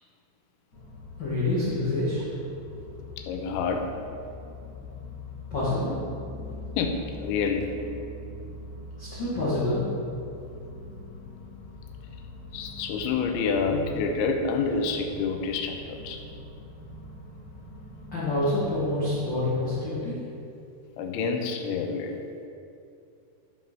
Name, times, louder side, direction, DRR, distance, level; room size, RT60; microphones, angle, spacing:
sound 1, 0.7-19.3, left 2 dB, 30° left, 1.9 m, -43 dB
voice 1, 1.2-2.4 5.5-5.9 9.0-9.9 18.1-20.2, left 2 dB, 50° left, -10 dB, 1.3 m, -27 dB
voice 2, 3.2-3.9 6.8-7.7 12.5-16.2 21.0-22.2, left 5 dB, 85° left, 3 dB, 3.1 m, -28 dB
12.0 x 5.4 x 5.7 m, 2.6 s
omnidirectional pair, 5.4 m